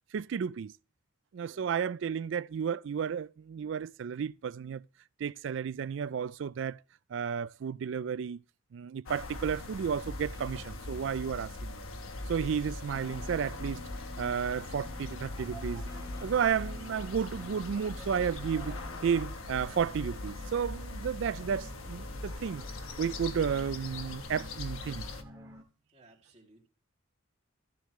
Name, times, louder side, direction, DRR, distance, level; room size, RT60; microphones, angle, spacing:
voice 1, 0.1-0.7 1.3-4.8 5.2-6.8 7.1-8.4 8.7-11.8 12.3-13.8 14.2-15.9 16.2-18.8 19.0-22.6 23.0-25.0, right 7 dB, 60° right, 0.3 m, -32 dB
voice 2, 1.4-2.0 25.9-26.7, right 2 dB, 30° right, 2.4 m, -61 dB
sound 1, 9.1-25.2, left 2 dB, 85° left, 1.1 m, -41 dB
sound 2, 10.3-20.7, left 1 dB, 20° left, 1.1 m, -53 dB
sound 3, 12.9-25.6, equal, 15° right, 2.1 m, -51 dB
14.0 x 6.8 x 3.1 m
head